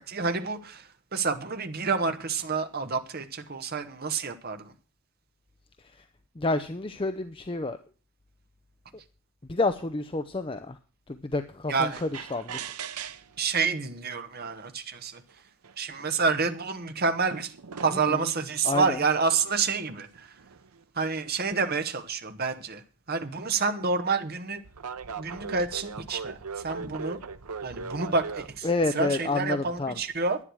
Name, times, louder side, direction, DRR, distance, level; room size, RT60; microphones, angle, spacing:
voice 1, 0.0-4.7 11.7-12.0 13.4-15.2 15.8-17.5 17.8-20.3 21.0-22.8 23.1-24.6 25.2-26.4 26.6-27.2 27.6-28.7 28.9-30.4, right 4 dB, 45° right, 1.1 m, -28 dB
voice 2, 6.4-7.8 9.5-10.8 11.1-12.6 17.9-18.3 18.6-19.0 28.6-30.0, left 2 dB, 25° left, 0.6 m, -29 dB
sound 1, 11.9-13.5 14.5-14.6 15.3-15.4 15.6-16.5 17.3-18.4 19.3-20.8 23.4-23.6 24.6-28.6, right 5 dB, 85° right, 0.8 m, -39 dB
11.0 x 9.9 x 6.3 m
head